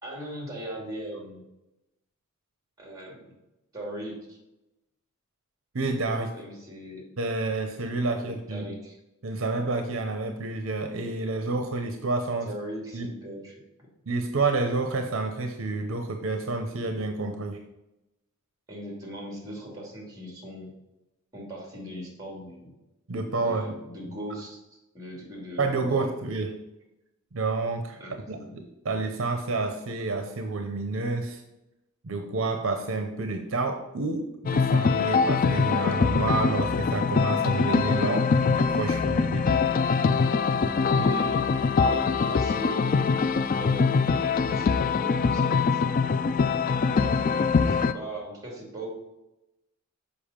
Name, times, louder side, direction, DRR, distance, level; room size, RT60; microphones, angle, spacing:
voice 1, 0.0-1.4 2.8-3.2 3.7-4.4 6.3-7.0 8.2-9.0 12.5-13.5 18.7-20.7 21.3-22.8 23.4-26.1 28.0-28.5 40.9-43.0 43.6-46.0 46.7-48.9, equal, 15° right, -1 dB, 2.5 m, -39 dB
voice 2, 5.7-6.4 7.2-8.6 9.2-12.5 12.9-13.1 14.1-17.6 23.1-23.7 25.6-26.6 27.3-28.0 28.3-31.4 32.0-39.6 41.0-41.1, right 3 dB, 65° right, 5 dB, 0.7 m, -29 dB
sound 1, 34.5-47.9, left 5 dB, 40° left, 0.3 m, -23 dB
7.0 x 5.2 x 5.1 m, 0.95 s
head